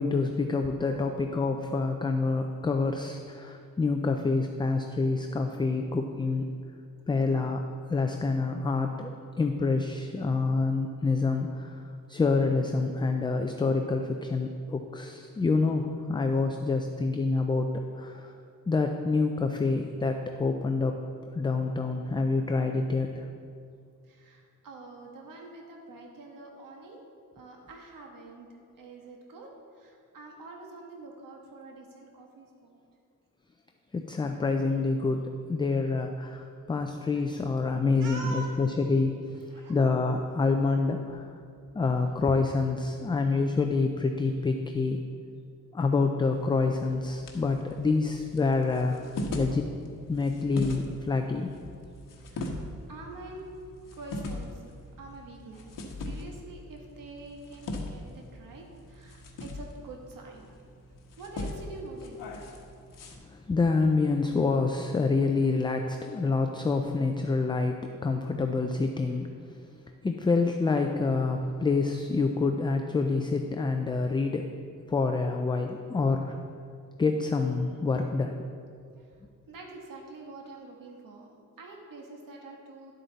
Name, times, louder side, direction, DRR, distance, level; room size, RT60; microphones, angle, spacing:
voice 1, 0.0-6.5 7.1-7.6 7.9-9.1 9.4-11.8 12.1-17.7 18.0-18.3 18.7-21.0 21.3-23.1 33.9-35.2 35.5-39.1 39.7-41.3 41.7-45.0 45.7-49.7 50.1-51.5 63.3-69.3 70.0-74.5 74.9-76.4 77.0-78.3, left 3 dB, 15° left, 4 dB, 0.3 m, -27 dB
voice 2, 0.8-1.3 18.1-18.3 21.7-21.8 24.0-29.5 29.8-32.8 37.2-37.3 38.0-38.6 39.5-39.8 52.2-53.5 53.9-54.6 55.0-60.5 61.2-62.2 62.8-63.0 67.3-67.4 79.0-79.2 79.5-82.9, right 2 dB, 75° right, 1 dB, 1.5 m, -46 dB
sound 1, 46.3-63.2, left 1 dB, 75° left, 1.3 m, -41 dB
11.0 x 7.6 x 4.0 m, 2.3 s
wide cardioid pair, 160°, 33 cm